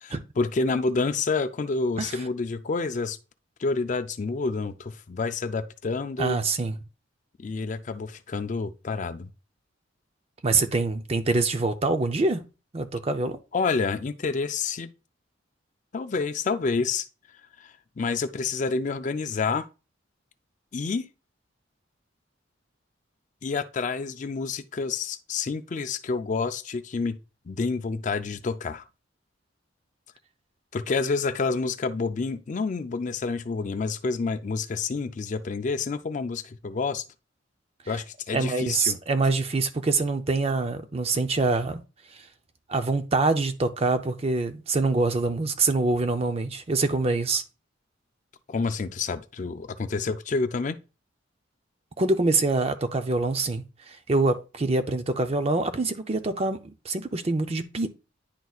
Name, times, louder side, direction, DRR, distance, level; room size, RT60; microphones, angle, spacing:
voice 1, 0.0-3.2 3.6-6.4 7.4-9.3 13.5-14.9 15.9-17.1 17.6-19.7 20.7-21.1 23.4-27.2 27.5-28.8 30.7-37.0 37.9-39.0 48.5-50.8, left 4 dB, 40° left, 0.4 m, -28 dB
voice 2, 6.2-6.8 10.4-12.4 12.7-13.4 38.3-41.8 42.1-42.2 42.7-47.4 52.0-57.9, right 3 dB, 30° right, 0.5 m, -25 dB
10.5 x 4.0 x 2.3 m
head